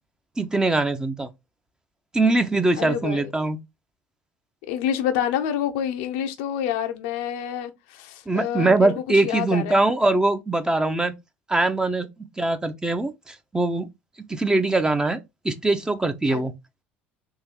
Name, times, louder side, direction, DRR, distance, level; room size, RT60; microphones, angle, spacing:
voice 1, 0.4-1.3 2.1-3.6 8.3-11.1 11.5-12.1 12.4-13.9 14.3-15.2 15.4-16.5, right 2 dB, 10° right, 0.6 m, -22 dB
voice 2, 2.8-3.3 4.7-9.8 16.3-16.4, left 9 dB, 65° left, 0.6 m, -28 dB
3.7 x 2.6 x 2.9 m
figure-of-eight pair, 65°, 6 cm